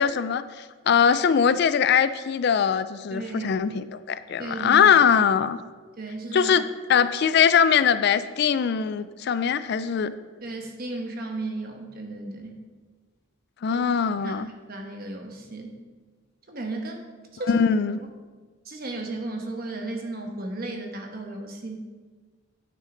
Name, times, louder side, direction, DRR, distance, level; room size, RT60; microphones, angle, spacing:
voice 1, 0.0-5.6 6.3-6.6 6.9-10.1 13.6-14.5 17.5-18.0, left 7 dB, 55° left, 13 dB, 0.3 m, -21 dB
voice 2, 3.1-3.5 4.4-4.9 6.0-6.5 10.4-12.6 13.7-13.8 14.2-14.4 14.7-15.8 16.5-17.0 17.3-17.5 18.6-21.9, right 2 dB, 45° right, 3 dB, 1.1 m, -34 dB
9.3 x 6.5 x 3.8 m, 1.4 s
head